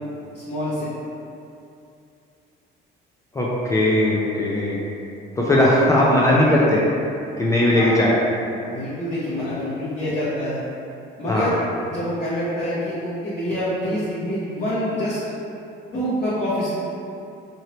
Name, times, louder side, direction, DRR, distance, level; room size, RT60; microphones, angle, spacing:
voice 1, 0.3-0.9 7.7-8.0 8.7-10.6 11.2-11.6 11.9-15.2 15.9-16.7, equal, 35° left, -13 dB, 0.8 m, -26 dB
voice 2, 3.3-4.8 5.4-6.8 7.4-8.2 11.3-11.5, left 1 dB, 15° left, -6 dB, 0.4 m, -18 dB
3.0 x 2.7 x 2.9 m, 2.7 s
cardioid pair, 115°, 20 cm